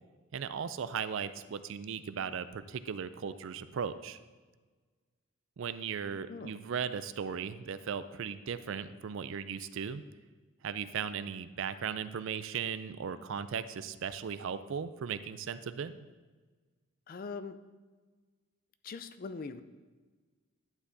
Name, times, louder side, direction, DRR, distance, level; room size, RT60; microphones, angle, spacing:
voice 1, 0.3-4.2 5.6-10.0 10.6-16.1, right 7 dB, 60° right, 13 dB, 0.4 m, -37 dB
voice 2, 17.1-17.6 18.8-19.6, left 4 dB, 40° left, 11 dB, 0.4 m, -41 dB
11.5 x 8.1 x 2.7 m, 1.4 s
head